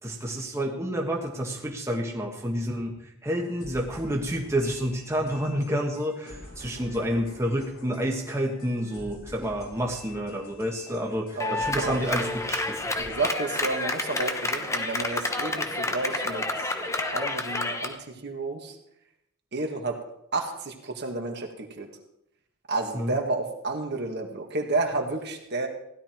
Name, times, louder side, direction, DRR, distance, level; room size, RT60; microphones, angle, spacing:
voice 1, 0.0-12.9 22.9-23.2, equal, 15° right, 0 dB, 1.4 m, -29 dB
sound 1, 3.4-14.7, left 1 dB, 80° left, 4.1 m, -48 dB
voice 2, 11.3-12.0 13.0-16.7 17.1-18.8 19.5-20.0 20.3-21.9 22.7-25.7, right 3 dB, 50° right, 3 dB, 1.9 m, -31 dB
Clapping, 11.4-18.0, left 2 dB, 15° left, 1.0 m, -29 dB
16.5 x 11.5 x 4.6 m, 0.78 s
head